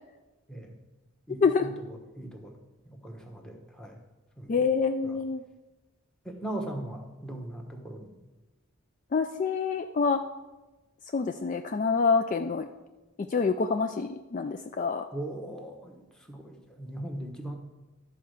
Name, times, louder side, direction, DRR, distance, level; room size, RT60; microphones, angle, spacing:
voice 1, 1.3-2.6 2.9-4.0 4.4-4.6 5.0-5.2 6.2-8.1 15.1-17.5, right 1 dB, 5° left, 2 dB, 1.1 m, -39 dB
voice 2, 4.5-5.4 9.1-10.2 11.1-12.7 13.2-15.1, left 5 dB, 35° left, 7 dB, 0.3 m, -26 dB
12.5 x 4.5 x 6.4 m, 1.1 s
head